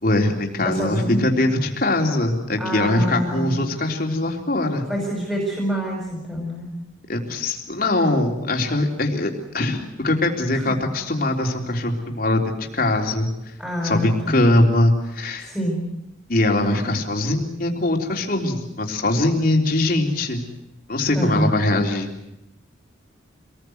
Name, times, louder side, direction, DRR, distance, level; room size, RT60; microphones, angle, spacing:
voice 1, 0.0-4.8 7.1-13.3 13.8-15.5 16.3-20.5 20.9-22.1, left 1 dB, 50° left, 2 dB, 3.7 m, -22 dB
voice 2, 0.6-1.2 2.6-3.6 4.9-6.7 10.5-10.6 13.6-14.1 15.4-15.8 21.1-21.5, equal, 5° right, -1 dB, 5.9 m, -26 dB
26.5 x 20.0 x 8.0 m, 0.88 s
head